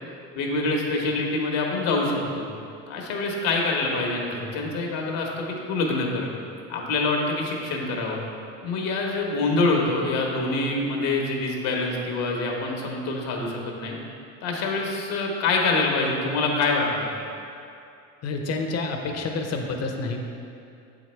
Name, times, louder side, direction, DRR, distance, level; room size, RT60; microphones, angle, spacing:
voice 1, 0.3-2.4 2.9-6.3 6.7-8.2 8.6-13.9 14.4-17.1, left 3 dB, 70° left, 0 dB, 1.3 m, -25 dB
voice 2, 18.2-20.4, left 3 dB, 40° left, 3 dB, 0.9 m, -29 dB
7.3 x 5.0 x 3.2 m, 2.5 s
supercardioid pair, 85°, 38 cm